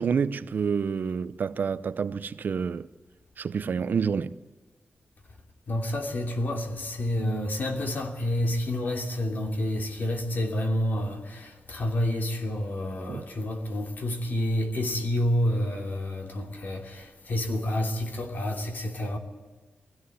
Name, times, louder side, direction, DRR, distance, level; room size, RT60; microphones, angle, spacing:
voice 1, 0.0-2.9 3.4-4.4 13.1-13.2, right 6 dB, 60° right, 0.6 m, -28 dB
voice 2, 5.7-19.2, left 1 dB, 60° left, 2.9 m, -29 dB
20.5 x 16.0 x 9.5 m
wide cardioid pair, 120°, 4 cm